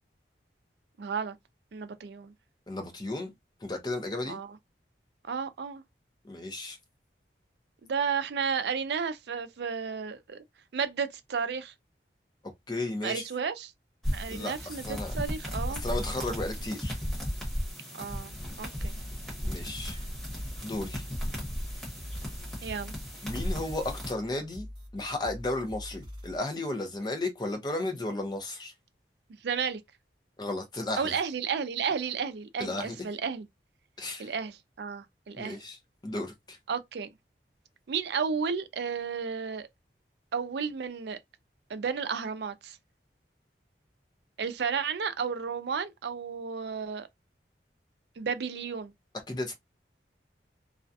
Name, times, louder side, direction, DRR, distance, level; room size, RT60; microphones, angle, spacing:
voice 1, 1.0-1.4 1.7-2.3 4.3-4.6 5.3-5.8 7.8-10.4 10.7-11.7 13.0-13.7 14.1-15.8 17.9-18.9 22.6-22.9 29.4-29.8 31.0-33.5 34.2-35.6 36.7-37.1 37.9-39.7 40.3-41.2 41.7-42.8 44.4-47.1 48.2-48.9, right 6 dB, 70° right, 0.4 m, -32 dB
voice 2, 2.7-3.3 3.6-4.4 6.2-6.8 12.7-13.2 14.3-14.5 14.9-15.1 15.7-17.0 19.4-20.0 20.6-21.0 23.2-24.7 24.9-28.7 30.4-31.1 32.6-33.0 34.0-34.3 35.4-35.8 36.0-36.6 49.3-49.5, left 2 dB, 25° left, 0.6 m, -34 dB
sound 1, 14.0-24.1, equal, ahead, 0.9 m, -35 dB
sound 2, 19.0-26.4, left 1 dB, 25° right, 0.7 m, -45 dB
2.4 x 2.1 x 2.6 m
head